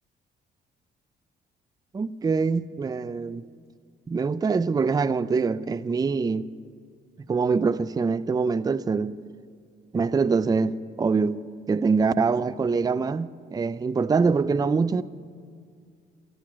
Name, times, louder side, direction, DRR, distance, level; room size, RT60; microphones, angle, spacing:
voice 1, 1.9-3.4 4.1-6.5 7.3-9.2 9.9-11.4 11.7-15.0, right 4 dB, 20° right, 0.4 m, -24 dB
14.0 x 8.1 x 9.9 m
cardioid pair, 90°, 20 cm